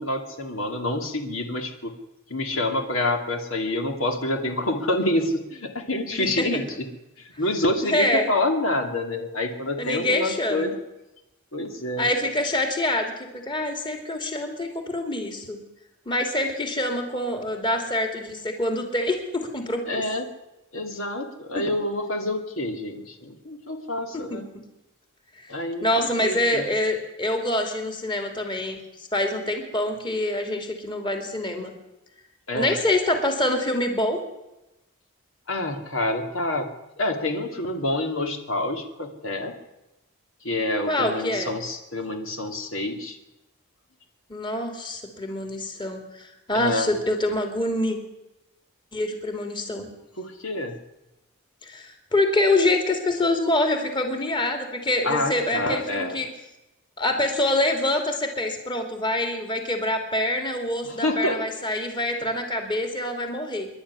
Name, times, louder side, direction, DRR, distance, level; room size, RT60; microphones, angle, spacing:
voice 1, 0.0-1.9 2.3-6.7 7.2-10.8 11.5-12.1 19.9-20.3 20.7-24.5 25.5-26.7 32.5-32.8 35.5-36.7 37.0-39.5 40.4-43.2 46.5-46.9 50.2-50.8 55.0-56.2 60.8-61.4, left 1 dB, 65° left, 4 dB, 2.6 m, -27 dB
voice 2, 6.1-6.4 7.8-8.3 9.8-10.7 12.0-15.6 16.0-20.0 21.6-21.7 24.1-24.4 25.4-25.5 25.8-31.7 32.5-34.2 40.9-41.5 44.3-48.0 48.9-49.9 51.6-56.3 57.0-63.7, left 1 dB, 20° left, 4 dB, 3.0 m, -25 dB
26.5 x 12.0 x 9.8 m, 0.96 s
head